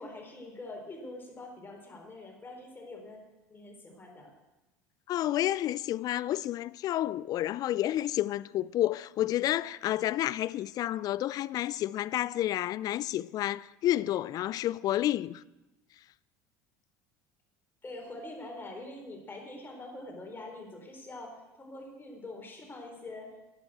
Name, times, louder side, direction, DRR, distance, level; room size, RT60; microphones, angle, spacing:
voice 1, 0.0-3.2 3.5-4.3 17.8-23.4, left 2 dB, 25° left, 4.1 m, -44 dB
voice 2, 5.1-15.4, left 13 dB, 50° left, 0.4 m, -30 dB
11.5 x 10.0 x 7.7 m
hypercardioid pair, 75°, 8 cm